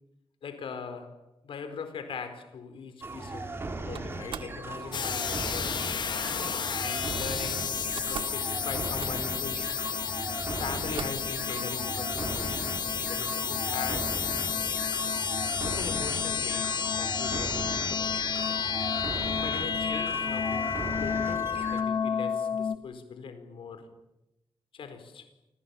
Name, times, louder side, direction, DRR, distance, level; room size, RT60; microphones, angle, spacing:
voice 1, 0.4-3.5 3.8-5.9 6.8-9.9 10.6-14.3 15.6-18.7 19.3-23.9 24.7-25.3, left 5 dB, 90° left, 9 dB, 4.5 m, -41 dB
sound 1, 3.0-21.8, right 2 dB, 30° right, 4.0 m, -38 dB
Slam, 3.9-4.6 6.0-6.4 7.5-7.6 7.8-8.4 8.7-9.4 10.2-10.3 10.7-11.3, right 7 dB, 90° right, 1.9 m, -42 dB
sound 2, 4.9-22.8, left 7 dB, 60° left, 1.1 m, -31 dB
29.0 x 27.0 x 7.1 m, 0.94 s
wide cardioid pair, 165°, 9 cm